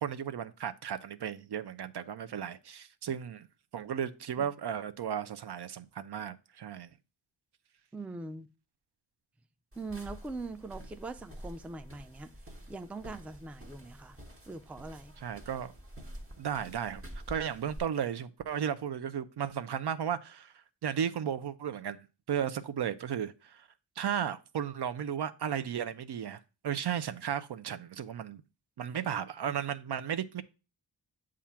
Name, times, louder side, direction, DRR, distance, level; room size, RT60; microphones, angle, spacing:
voice 1, 0.0-3.5 3.7-6.9 15.2-15.7 16.4-17.0 17.3-20.5 20.8-22.0 22.3-23.7 24.0-28.4 28.8-30.4, right 8 dB, 65° right, 0.5 m, -34 dB
voice 2, 7.9-8.5 9.8-12.3 12.7-14.2 14.5-15.2, right 3 dB, 5° right, 0.4 m, -42 dB
sound 1, 9.7-17.8, equal, 30° right, 1.2 m, -48 dB
7.2 x 2.5 x 5.6 m
cardioid pair, 60°, 44 cm